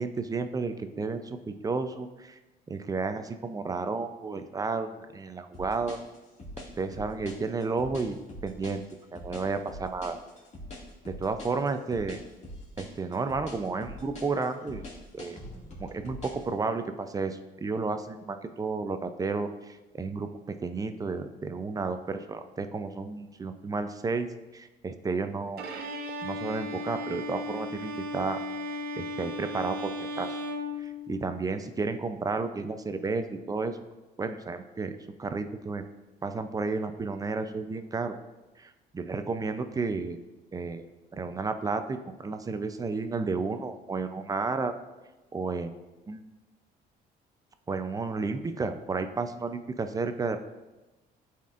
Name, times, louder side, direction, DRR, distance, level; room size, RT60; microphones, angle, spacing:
voice 1, 0.0-2.4 2.7-6.0 6.8-8.8 9.1-10.2 11.1-12.2 12.8-14.9 15.1-15.4 15.8-25.7 26.2-28.4 29.0-30.4 30.8-33.8 34.2-34.9 35.2-35.8 36.2-38.1 38.6-40.2 40.5-40.9 41.1-44.7 45.3-45.7 46.1-46.3 47.7-50.4, right 4 dB, 20° right, 8 dB, 0.5 m, -32 dB
sound 1, 5.5-16.5, left 1 dB, 40° left, 2.1 m, -43 dB
Bowed string instrument, 25.6-31.5, left 1 dB, 70° right, 0.8 m, -36 dB
12.0 x 4.3 x 2.5 m, 1.1 s
cardioid pair, 110°, 17 cm